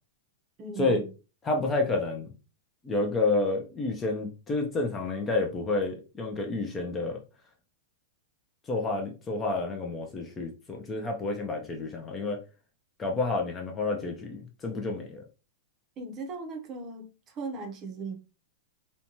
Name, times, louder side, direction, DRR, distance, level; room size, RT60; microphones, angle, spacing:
voice 1, 0.6-1.1 16.0-18.1, right 3 dB, 25° right, 0.6 m, -38 dB
voice 2, 1.4-2.3 2.8-7.2 8.7-12.4 13.0-15.2, left 3 dB, 15° left, 0.4 m, -29 dB
2.6 x 2.2 x 2.9 m
supercardioid pair, 150°, 0 cm